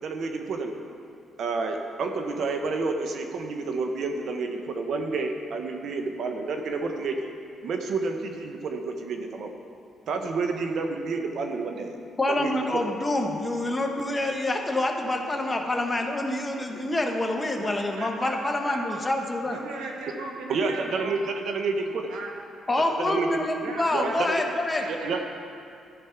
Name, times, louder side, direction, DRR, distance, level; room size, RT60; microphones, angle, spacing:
voice 1, 0.0-0.7 1.4-7.3 7.6-9.5 10.1-11.9 12.3-12.9 20.5-22.1 23.0-23.4 23.9-24.4 24.9-25.2, right 4 dB, 65° right, 4 dB, 0.9 m, -29 dB
voice 2, 12.2-19.6 22.7-24.8, left 2 dB, 20° left, 3 dB, 1.1 m, -27 dB
voice 3, 17.6-19.0 19.4-21.2 22.1-22.3 23.6-24.2 24.7-25.2, right 3 dB, 90° right, -1 dB, 1.6 m, -37 dB
13.5 x 5.4 x 5.8 m, 2.5 s
cardioid pair, 90°, 0 cm